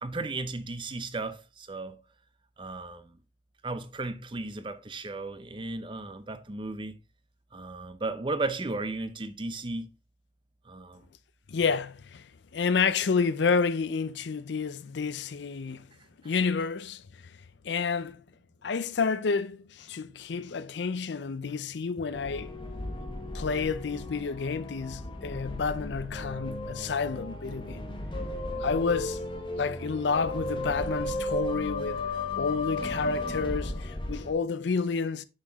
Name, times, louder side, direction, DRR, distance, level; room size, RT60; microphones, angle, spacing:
voice 1, 0.0-2.0 2.6-3.2 3.6-7.0 7.5-9.9 10.7-11.1 16.2-16.3 28.5-28.6, right 2 dB, 25° right, 0.6 m, -35 dB
voice 2, 11.5-15.9 16.2-17.0 17.6-18.2 18.6-22.6 23.3-27.8 28.6-29.2 29.6-35.3, left 5 dB, 70° left, 0.5 m, -30 dB
sound 1, 22.1-34.3, left 1 dB, 25° left, 1.1 m, -35 dB
6.4 x 5.8 x 3.5 m
head